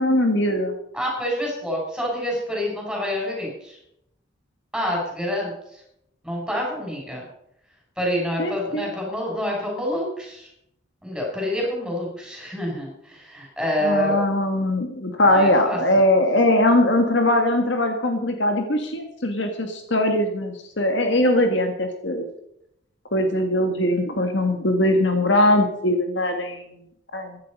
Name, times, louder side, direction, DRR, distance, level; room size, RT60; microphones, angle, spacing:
voice 1, 0.0-0.8 8.4-8.9 13.8-22.2 23.1-26.6 27.1-27.4, left 1 dB, 60° left, 6 dB, 1.9 m, -21 dB
voice 2, 0.9-3.8 4.7-5.8 6.2-7.3 8.0-10.5 11.0-14.2 15.2-16.0, equal, 5° right, -2 dB, 6.7 m, -27 dB
15.5 x 12.0 x 5.4 m, 0.76 s
head